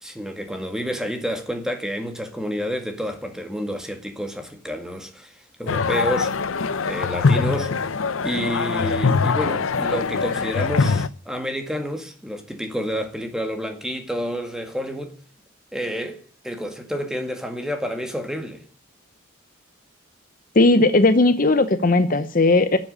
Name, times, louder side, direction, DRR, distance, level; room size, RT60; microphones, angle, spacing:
voice 1, 0.0-6.3 6.9-7.7 8.2-15.1 15.7-18.6, equal, 5° right, 1.8 m, -29 dB
sound 1, 5.7-11.1, left 4 dB, 75° left, 0.6 m, -22 dB
voice 2, 20.5-22.8, left 2 dB, 40° left, 0.8 m, -17 dB
11.5 x 7.4 x 9.9 m
head